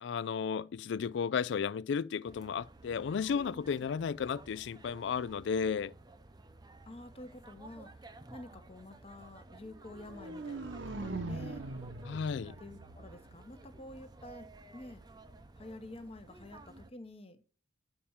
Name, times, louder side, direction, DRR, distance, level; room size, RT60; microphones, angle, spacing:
voice 1, 0.0-5.9 12.1-12.6, left 6 dB, 65° left, 0.3 m, -33 dB
sound 1, 2.3-16.9, right 2 dB, 20° right, 0.6 m, -54 dB
voice 2, 6.9-7.9 8.3-11.6 12.6-15.0 15.6-17.4, left 1 dB, 30° left, 0.9 m, -49 dB
sound 2, 9.9-14.0, right 2 dB, 75° right, 1.0 m, -42 dB
10.0 x 4.3 x 7.1 m
head